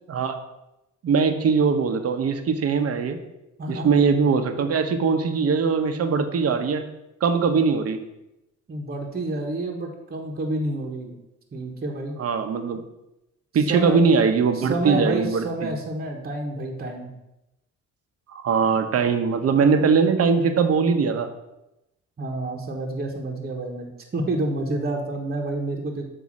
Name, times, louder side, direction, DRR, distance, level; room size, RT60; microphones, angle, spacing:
voice 1, 1.0-3.2 3.7-6.8 7.2-8.0 12.2-12.8 13.5-15.7 18.3-21.3, right 5 dB, 55° right, 7 dB, 0.8 m, -21 dB
voice 2, 8.7-11.2 11.5-12.2 13.6-14.0 14.5-17.1 22.2-26.0, right 2 dB, 30° right, 2 dB, 1.1 m, -29 dB
8.1 x 2.8 x 6.1 m, 0.92 s
cardioid pair, 90°, 30 cm